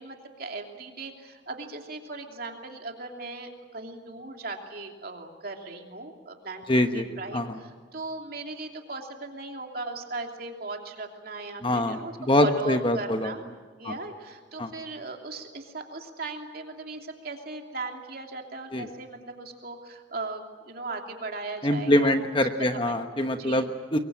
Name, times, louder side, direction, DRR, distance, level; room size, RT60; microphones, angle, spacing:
voice 1, 0.0-13.4 13.8-22.2 22.9-23.0 23.3-23.7, right 3 dB, 50° right, 2 dB, 2.9 m, -38 dB
voice 2, 6.7-7.0 7.3-7.6 11.6-13.3 13.8-13.9 14.6-14.7 18.7-18.9 21.6-24.0, left 1 dB, 25° left, 7 dB, 1.1 m, -24 dB
24.0 x 23.0 x 8.9 m, 1.4 s
head